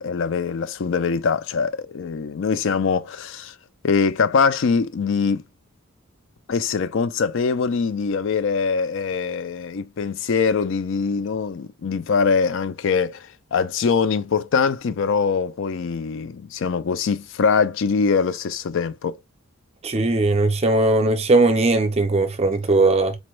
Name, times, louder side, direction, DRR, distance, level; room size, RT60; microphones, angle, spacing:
voice 1, 0.0-3.5 3.8-5.4 6.5-19.2, left 5 dB, 60° left, 0.4 m, -23 dB
voice 2, 19.8-23.2, right 2 dB, 30° right, 0.5 m, -19 dB
4.1 x 2.2 x 3.0 m
head